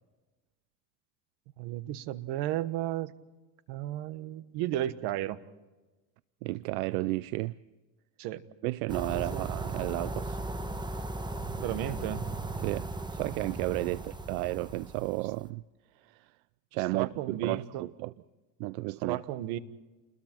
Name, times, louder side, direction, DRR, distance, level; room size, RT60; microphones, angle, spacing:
voice 1, 1.6-3.1 3.7-5.4 8.2-8.4 9.1-9.5 11.6-12.2 16.9-17.8 19.0-19.6, right 13 dB, 70° right, 1.4 m, -33 dB
voice 2, 6.4-7.6 8.6-10.4 12.6-15.6 16.1-16.3 16.7-18.1 18.6-19.2, right 20 dB, 90° right, 0.6 m, -33 dB
sound 1, 8.9-15.3, right 2 dB, 10° right, 1.2 m, -37 dB
29.5 x 21.5 x 4.5 m
supercardioid pair, 115°, 41 cm